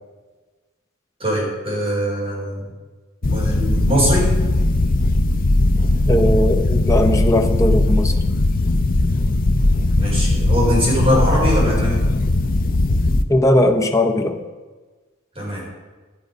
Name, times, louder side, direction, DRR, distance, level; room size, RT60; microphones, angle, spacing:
voice 1, 1.2-2.7 3.2-4.3 10.0-12.0 15.3-15.6, equal, 30° right, -6 dB, 4.3 m, -21 dB
sound 1, 3.2-13.2, left 2 dB, 45° left, 0.6 m, -18 dB
voice 2, 6.1-8.1 13.3-14.4, left 1 dB, 15° left, 5 dB, 0.9 m, -18 dB
11.5 x 9.6 x 5.2 m, 1.3 s
head